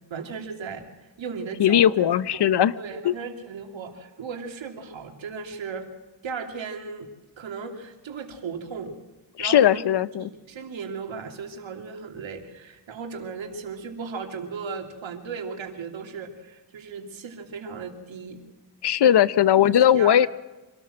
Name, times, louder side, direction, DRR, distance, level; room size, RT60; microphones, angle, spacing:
voice 1, 0.1-0.9 1.2-2.1 2.3-2.5 2.7-5.9 6.2-7.1 7.4-9.0 9.4-9.8 10.2-18.4 19.6-20.3, right 5 dB, 70° right, 4 dB, 3.0 m, -36 dB
voice 2, 1.6-2.8 3.0-3.1 9.4-10.3 18.8-20.3, left 10 dB, 60° left, 18 dB, 0.8 m, -19 dB
25.5 x 13.0 x 7.9 m, 1.2 s
cardioid pair, 75°, 47 cm